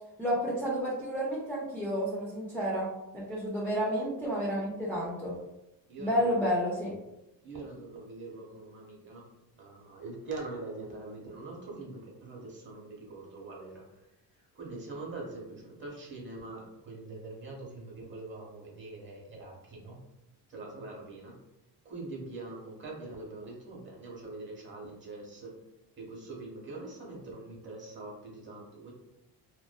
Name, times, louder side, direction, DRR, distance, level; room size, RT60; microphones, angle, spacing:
voice 1, 0.2-5.4 6.0-6.9, equal, 5° left, -8 dB, 0.4 m, -31 dB
voice 2, 5.9-6.5 7.4-9.3 9.6-13.8 14.3-20.0 20.5-21.4 21.8-25.6 26.0-28.9, right 3 dB, 25° right, -2 dB, 0.8 m, -43 dB
2.5 x 2.2 x 2.2 m, 0.90 s
cardioid pair, 115°, 44 cm